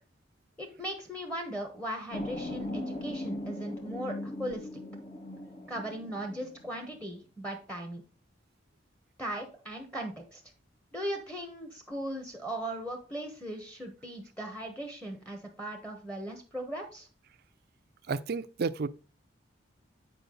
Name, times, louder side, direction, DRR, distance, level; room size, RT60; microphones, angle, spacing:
voice 1, 0.6-4.7 5.7-8.0 9.2-10.4 10.9-17.1, right 1 dB, 5° left, 1.1 m, -38 dB
sound 1, 2.1-7.1, left 1 dB, 35° left, 1.0 m, -39 dB
voice 2, 18.1-18.9, right 4 dB, 55° right, 0.5 m, -31 dB
8.1 x 4.9 x 3.8 m
head